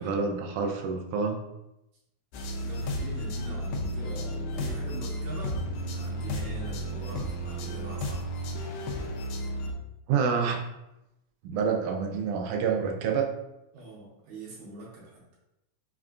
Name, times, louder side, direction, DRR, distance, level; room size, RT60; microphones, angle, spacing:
voice 1, 0.0-1.4 10.1-10.6 11.4-13.3, right 6 dB, 90° right, 3 dB, 2.0 m, -27 dB
sound 1, 2.3-9.7, equal, 80° left, 1.9 m, -33 dB
voice 2, 2.6-8.4 13.7-15.2, right 1 dB, 75° right, -4 dB, 2.3 m, -43 dB
5.3 x 2.4 x 2.4 m, 0.88 s
omnidirectional pair, 3.4 m